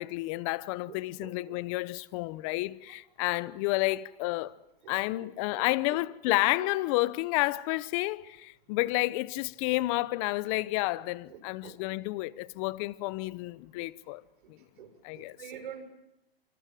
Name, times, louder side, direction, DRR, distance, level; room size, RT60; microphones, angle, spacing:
voice 1, 0.0-4.5 4.9-14.2 15.0-15.4, left 20 dB, 35° left, 0.9 m, -30 dB
voice 2, 0.9-1.6 4.8-4.9 5.5-5.7 6.3-6.4 11.3-11.8 14.4-14.5 14.8-15.8, right 9 dB, 60° right, 6.8 m, -46 dB
27.5 x 26.5 x 7.7 m
hypercardioid pair, 135°, 29 cm